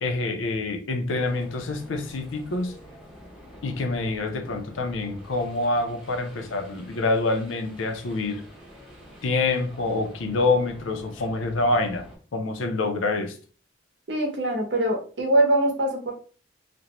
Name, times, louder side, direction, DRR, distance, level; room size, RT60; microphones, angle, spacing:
voice 1, 0.0-2.8 3.6-8.4 9.2-12.0 12.3-13.4, left 2 dB, 90° left, 0.5 m, -26 dB
sound 1, 1.2-12.2, equal, ahead, 0.7 m, -47 dB
voice 2, 14.1-16.1, right 1 dB, 65° right, 0.8 m, -23 dB
2.5 x 2.1 x 2.9 m
head